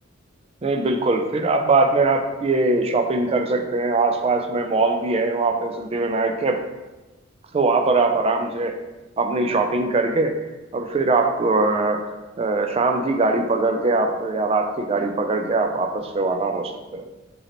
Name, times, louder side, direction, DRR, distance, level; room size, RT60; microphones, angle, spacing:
voice 1, 0.6-6.7 7.5-8.8 9.2-10.3 10.7-12.1 12.4-17.0, right 3 dB, 30° right, 5 dB, 0.3 m, -21 dB
4.9 x 3.2 x 2.9 m, 1.1 s
head